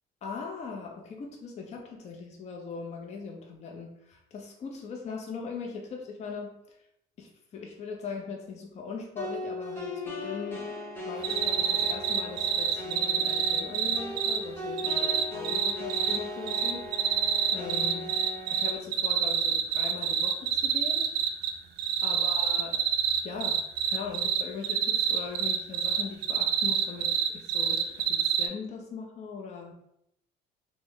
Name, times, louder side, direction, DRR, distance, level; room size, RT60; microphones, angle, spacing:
voice 1, 0.2-6.5 7.2-10.8 11.0-17.2 17.5-18.1 18.5-21.0 22.0-22.8 23.2-23.6 23.8-29.7, left 5 dB, 40° left, 1 dB, 0.6 m, -40 dB
sound 1, 9.2-18.8, left 2 dB, 15° left, 0.9 m, -38 dB
sound 2, 11.2-14.4 14.8-16.2 16.5-21.5 21.8-28.5, right 9 dB, 80° right, 0.4 m, -26 dB
3.1 x 2.1 x 3.7 m, 0.78 s
cardioid pair, 110°, 17 cm